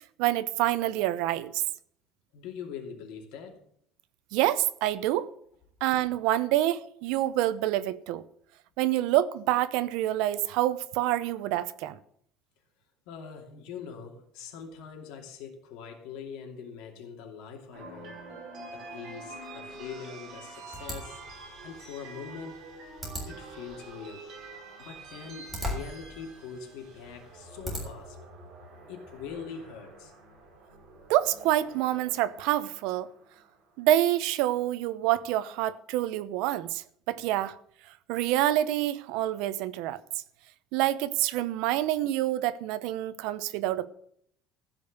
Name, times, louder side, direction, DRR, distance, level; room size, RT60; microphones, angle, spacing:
voice 1, 0.0-1.6 4.3-5.3 5.8-8.2 8.8-12.0 31.1-33.1 33.8-37.6 38.1-40.0 40.7-43.9, right 14 dB, 70° right, 0.8 m, -27 dB
voice 2, 2.3-3.6 13.1-18.2 18.7-21.2 21.6-22.6 23.2-24.3 24.8-28.2 28.9-30.1, left 6 dB, 70° left, 2.7 m, -43 dB
sound 1, 17.7-33.9, right 3 dB, 40° right, 5.0 m, -47 dB
sound 2, 20.7-28.2, left 1 dB, 5° right, 3.8 m, -41 dB
15.5 x 5.3 x 8.1 m
cardioid pair, 175°, 0 cm